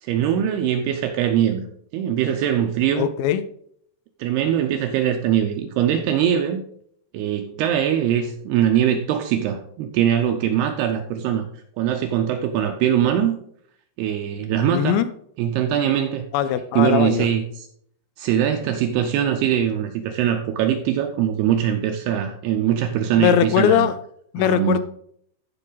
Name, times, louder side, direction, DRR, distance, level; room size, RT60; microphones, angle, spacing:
voice 1, 0.0-1.7 1.9-3.1 4.2-6.6 7.1-11.5 11.8-13.4 14.0-15.0 15.4-16.2 16.8-17.7 18.2-23.9 24.4-24.8, right 10 dB, 80° right, 6 dB, 2.4 m, -22 dB
voice 2, 3.0-3.4 14.7-15.1 16.3-17.3 23.2-24.0 24.3-24.8, left 10 dB, 80° left, 12 dB, 2.9 m, -20 dB
14.0 x 5.5 x 4.0 m, 0.66 s
omnidirectional pair, 5.3 m